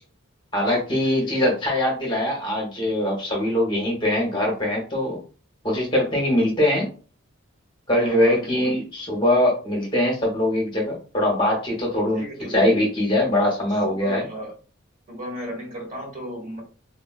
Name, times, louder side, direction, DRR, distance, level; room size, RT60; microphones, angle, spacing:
voice 1, 0.5-5.2 5.6-6.9 7.9-12.2 12.5-14.3, left 1 dB, 20° left, -1 dB, 0.8 m, -22 dB
voice 2, 7.9-8.7 12.1-12.5 13.9-14.5 15.1-16.6, equal, 40° right, 0 dB, 1.3 m, -35 dB
3.5 x 2.2 x 2.2 m, 0.37 s
head